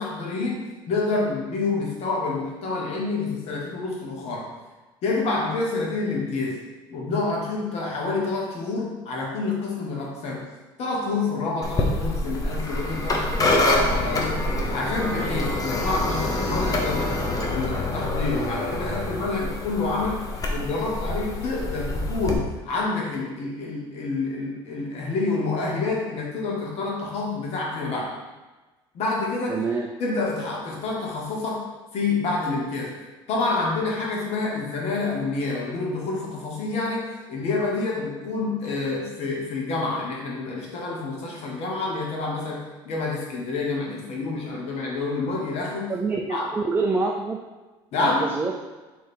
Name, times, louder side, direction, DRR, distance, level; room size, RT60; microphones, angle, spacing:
voice 1, 0.0-4.5 5.0-6.6 6.9-10.5 10.8-17.2 17.5-20.2 20.5-28.2 28.9-29.6 30.0-33.0 33.3-45.9 46.3-46.5 47.9-48.3, left 3 dB, 60° left, -2 dB, 1.3 m, -28 dB
sound 1, 11.6-22.3, left 1 dB, 30° left, 0.8 m, -26 dB
voice 2, 29.5-29.9 45.9-47.4 48.0-48.6, right 3 dB, 15° right, 0 dB, 0.5 m, -26 dB
3.6 x 3.2 x 4.4 m, 1.2 s
supercardioid pair, 90°, 12 cm